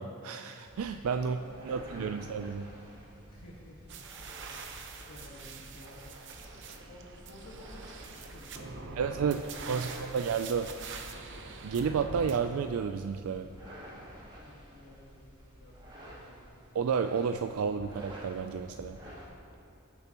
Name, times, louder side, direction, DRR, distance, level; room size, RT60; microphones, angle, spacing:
voice 1, 0.0-1.4 1.6-2.7 9.0-9.4 9.7-10.7 11.6-13.5 16.7-19.0, right 6 dB, 75° right, 6 dB, 0.4 m, -31 dB
sound 1, 0.6-19.2, equal, 20° right, 2.2 m, -50 dB
voice 2, 1.1-2.2 3.3-4.0 4.4-4.8 5.1-6.0 6.8-10.7 14.4-16.5, left 1 dB, 75° left, -4 dB, 1.6 m, -53 dB
sound 2, 3.9-12.4, right 4 dB, 60° right, 0.8 m, -44 dB
19.5 x 7.0 x 3.0 m, 2.6 s
head